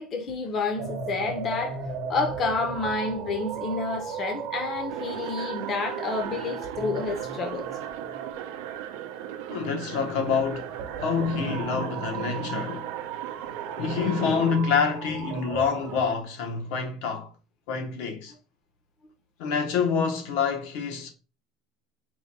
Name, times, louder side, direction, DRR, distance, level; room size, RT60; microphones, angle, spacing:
voice 1, 0.0-1.8 2.1-7.7, left 3 dB, 30° left, 0.6 m, -29 dB
sound 1, 0.8-16.1, right 7 dB, 55° right, 0.9 m, -37 dB
sound 2, 4.9-14.6, right 10 dB, 85° right, 0.4 m, -38 dB
voice 2, 9.5-13.1 13.7-17.3 17.7-18.3 19.4-21.1, left 5 dB, 75° left, 0.9 m, -27 dB
4.5 x 2.2 x 4.0 m
cardioid pair, 165°, 0 cm